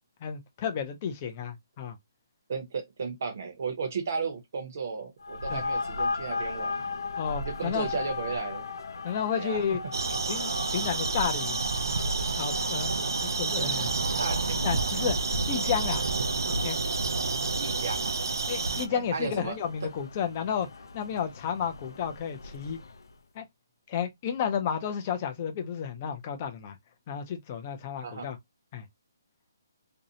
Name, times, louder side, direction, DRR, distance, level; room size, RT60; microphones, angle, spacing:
voice 1, 0.2-2.0 5.5-5.6 7.2-7.9 9.0-9.8 10.3-11.6 12.4-13.9 14.6-15.2 15.5-16.0 16.5-16.8 18.5-20.7 20.9-22.8 23.4-23.5 23.9-26.8 27.1-28.4 28.7-28.9, left 7 dB, 15° left, 0.3 m, -32 dB
voice 2, 2.5-6.9 7.4-8.7 9.3-9.6 13.6-13.7 14.2-14.6 15.6-15.7 17.6-18.2 18.9-19.6 28.0-28.3, right 5 dB, 40° right, 0.6 m, -34 dB
sound 1, 5.2-23.1, left 3 dB, 90° left, 0.4 m, -38 dB
sound 2, 9.9-18.9, right 3 dB, 80° right, 0.4 m, -29 dB
2.5 x 2.0 x 2.6 m
hypercardioid pair, 180°, 2 cm